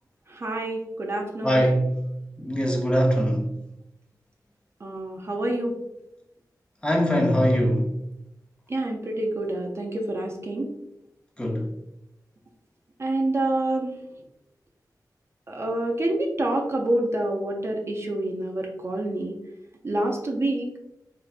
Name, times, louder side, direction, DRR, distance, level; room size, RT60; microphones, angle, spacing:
voice 1, 0.3-1.6 4.8-5.8 8.7-10.7 13.0-14.0 15.5-19.4 19.8-20.7, right 1 dB, 40° right, 0.4 m, -27 dB
voice 2, 1.4-2.0 2.4-3.5 6.8-7.9 11.4-11.7, equal, 15° left, 0.5 m, -22 dB
3.2 x 2.5 x 2.4 m
wide cardioid pair, 110°, 7 cm